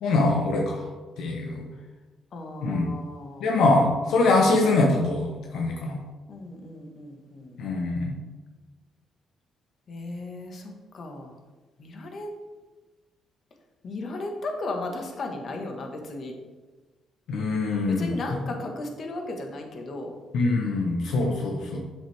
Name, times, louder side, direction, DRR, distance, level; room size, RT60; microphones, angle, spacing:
voice 1, 0.0-0.9 1.2-1.7 2.6-2.9 3.4-6.0 7.6-8.2 17.3-18.4 20.3-21.8, left 2 dB, 75° left, 0 dB, 1.1 m, -23 dB
voice 2, 2.3-3.5 6.3-7.6 9.9-11.3 11.8-12.3 13.8-16.3 17.9-20.1, left 2 dB, 55° left, 3 dB, 1.5 m, -35 dB
7.7 x 7.5 x 3.5 m, 1.2 s
cardioid pair, 90°, 0 cm